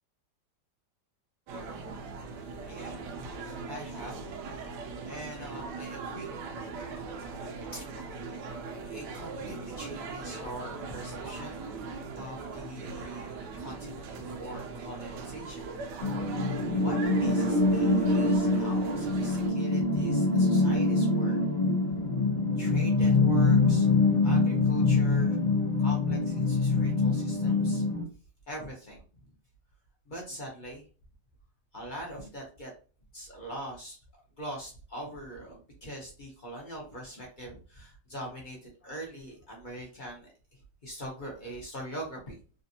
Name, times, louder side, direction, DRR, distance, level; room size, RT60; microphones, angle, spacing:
sound 1, 1.5-19.5, right 4 dB, 75° right, 1.2 m, -40 dB
voice 1, 2.1-8.0 8.8-15.7 16.1-21.4 22.6-23.9 24.2-25.4 25.8-27.8 28.5-29.0 30.1-30.8 31.7-32.7 33.1-34.0 34.4-42.4, right 1 dB, 40° left, -2 dB, 0.8 m, -43 dB
sound 2, 16.0-28.0, left 3 dB, 70° left, 0.4 m, -25 dB
3.3 x 2.5 x 2.7 m, 0.37 s
omnidirectional pair, 1.9 m